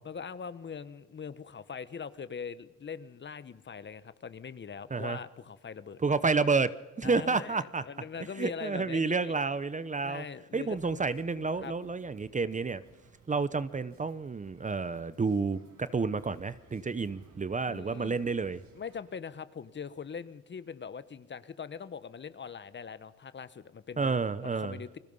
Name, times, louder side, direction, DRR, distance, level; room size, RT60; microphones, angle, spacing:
voice 1, 0.0-6.0 7.0-9.3 10.0-10.8 11.6-11.7 17.7-18.2 18.7-25.0, left 6 dB, 35° left, 15 dB, 1.2 m, -42 dB
voice 2, 6.0-7.9 8.4-10.2 10.5-12.8 13.3-18.6 24.0-24.8, right 4 dB, 25° right, 15 dB, 0.9 m, -30 dB
sound 1, 10.7-19.0, right 5 dB, 70° right, 5.7 m, -60 dB
30.0 x 21.0 x 5.6 m, 1.2 s
cardioid pair, 90°, 30 cm